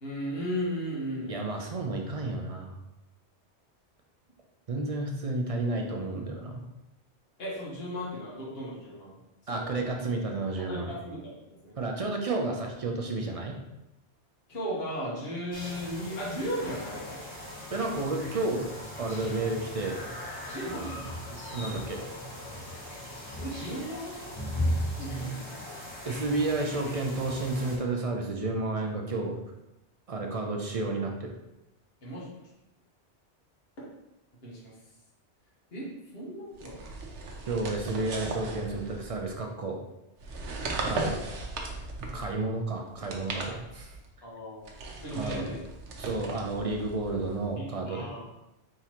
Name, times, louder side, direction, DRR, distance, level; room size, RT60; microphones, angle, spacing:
voice 1, 0.0-1.7 7.4-9.1 9.5-9.7 10.6-11.2 11.5-12.0 14.5-17.2 20.5-21.0 23.4-24.3 25.0-25.8 32.0-32.3 34.4-34.7 35.7-35.8 36.1-36.8 44.2-44.7 45.0-45.6 46.3-46.5 47.6-48.2, equal, 60° left, -5 dB, 1.5 m, -36 dB
voice 2, 1.3-2.8 4.7-6.6 9.5-10.9 11.8-13.6 17.7-18.7 19.0-20.0 21.3-22.0 26.0-29.4 30.1-31.3 37.5-39.8 40.8-41.2 42.1-44.0 45.1-45.5 46.0-48.1, right 2 dB, 45° right, 2 dB, 0.5 m, -31 dB
sound 1, 15.5-27.8, equal, 20° left, 1.0 m, -37 dB
sound 2, 36.6-39.3 40.2-42.4 42.9-44.1 44.6-47.5, right 3 dB, 90° right, 1.0 m, -37 dB
4.4 x 3.7 x 2.9 m, 0.91 s
omnidirectional pair, 1.1 m